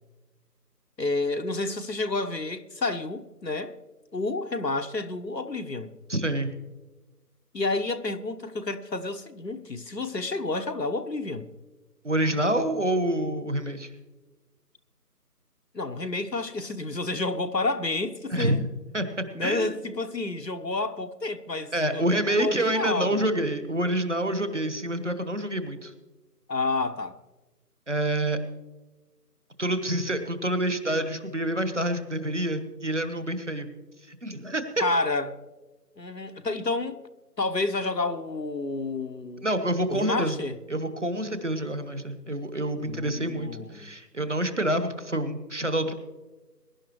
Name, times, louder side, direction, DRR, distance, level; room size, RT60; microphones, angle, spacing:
voice 1, 1.0-3.8 4.1-5.9 7.5-11.5 15.7-18.6 19.3-23.3 26.5-27.2 34.8-35.3 36.0-37.0 37.4-39.5 39.9-40.6 42.8-43.9, left 2 dB, 85° left, 1.3 m, -30 dB
voice 2, 6.1-6.5 12.0-13.9 18.3-18.7 18.9-19.7 21.7-25.9 27.9-28.4 29.6-33.7 34.1-34.8 39.4-40.4 40.7-45.9, right 1 dB, 45° right, 1.3 m, -27 dB
22.0 x 11.0 x 3.1 m
figure-of-eight pair, 170°, 49 cm